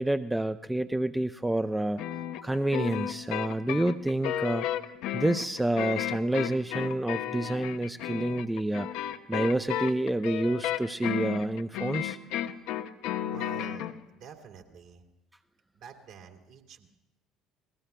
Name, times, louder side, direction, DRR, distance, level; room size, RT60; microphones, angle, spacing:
voice 1, 0.0-2.0 2.4-4.7 5.1-12.2, right 1 dB, 10° right, 10 dB, 0.5 m, -28 dB
sound 1, 2.0-13.9, left 11 dB, 65° left, 0.8 m, -33 dB
voice 2, 13.3-15.0 15.7-16.9, right 7 dB, 60° right, 1 dB, 2.5 m, -48 dB
29.5 x 20.5 x 2.3 m, 0.99 s
figure-of-eight pair, 60°, 0 cm